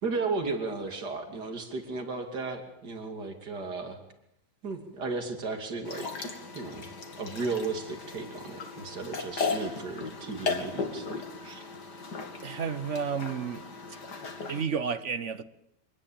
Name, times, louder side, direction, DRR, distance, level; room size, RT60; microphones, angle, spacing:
voice 1, 0.0-4.0 4.6-6.9 7.2-11.6, right 3 dB, 75° right, 3.4 m, -35 dB
sound 1, 5.8-14.6, left 4 dB, 80° left, 3.0 m, -36 dB
voice 2, 12.4-13.6 14.5-15.4, right 6 dB, 50° right, 1.3 m, -31 dB
25.0 x 19.0 x 8.9 m
omnidirectional pair, 1.8 m